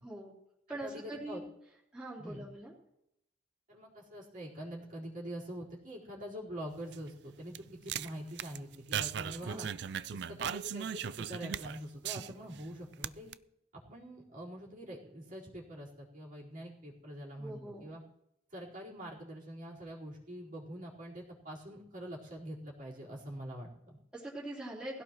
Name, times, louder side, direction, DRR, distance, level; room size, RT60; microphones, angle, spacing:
voice 1, 0.0-0.3 0.7-1.5 1.9-2.7 9.4-9.7 17.4-17.9 24.1-25.0, right 1 dB, 5° right, -7 dB, 3.3 m, -43 dB
voice 2, 0.7-1.4 2.2-2.4 3.7-9.7 10.1-13.3 13.7-18.0 18.5-24.0, equal, 50° right, -7 dB, 4.4 m, -45 dB
sound 1, 6.7-12.6 12.9-13.3, right 8 dB, 70° right, 0.4 m, -39 dB
19.5 x 16.5 x 3.1 m, 0.82 s
head